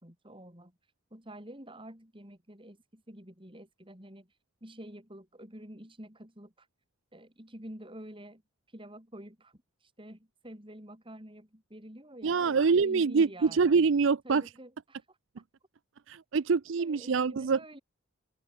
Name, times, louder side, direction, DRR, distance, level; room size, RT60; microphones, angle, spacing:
voice 1, 0.0-0.7 1.1-4.3 4.6-6.7 7.1-8.4 8.7-13.7 14.2-15.2 16.8-17.8, right 1 dB, 25° right, 4.4 m, -48 dB
voice 2, 12.2-14.4 16.1-17.6, right 5 dB, 60° right, 0.5 m, -25 dB
open air
head